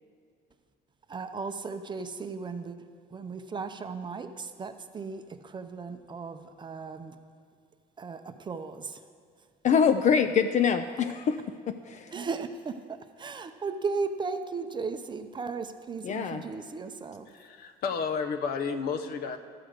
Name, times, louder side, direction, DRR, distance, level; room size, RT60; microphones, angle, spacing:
voice 1, 1.1-2.8 3.1-7.2 8.0-9.0 12.1-17.3, right 4 dB, 25° right, 8 dB, 0.5 m, -36 dB
voice 2, 9.6-12.1 16.0-16.4, left 7 dB, 45° left, 8 dB, 0.4 m, -25 dB
voice 3, 17.3-19.4, left 5 dB, 65° left, 7 dB, 0.8 m, -32 dB
12.5 x 6.4 x 5.0 m, 2.1 s
cardioid pair, 110°, 17 cm